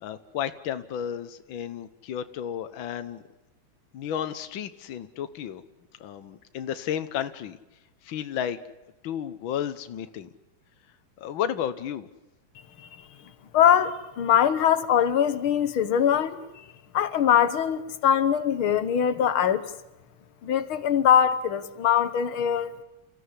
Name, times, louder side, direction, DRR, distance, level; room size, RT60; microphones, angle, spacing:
voice 1, 0.0-3.2 3.9-5.6 6.0-7.6 8.0-8.6 9.0-10.3 11.2-12.1, left 9 dB, 80° left, 1.1 m, -32 dB
voice 2, 13.5-16.4 16.9-19.6 20.4-22.7, left 9 dB, 60° left, 1.5 m, -22 dB
30.0 x 15.0 x 9.8 m
omnidirectional pair, 3.6 m